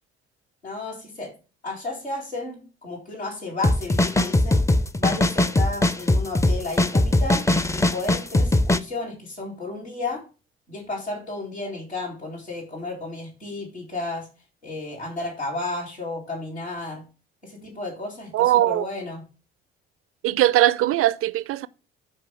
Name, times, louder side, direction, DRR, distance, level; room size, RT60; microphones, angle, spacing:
voice 1, 0.6-1.3 1.6-4.6 5.0-7.4 7.7-10.2 10.7-14.2 14.6-17.0 17.4-19.2, left 3 dB, 90° left, 2.4 m, -32 dB
sound 1, 3.6-8.8, left 1 dB, 10° left, 0.5 m, -20 dB
voice 2, 18.3-18.8 20.2-21.7, right 14 dB, 45° right, 0.5 m, -20 dB
12.5 x 4.7 x 3.3 m
figure-of-eight pair, 45°, 32 cm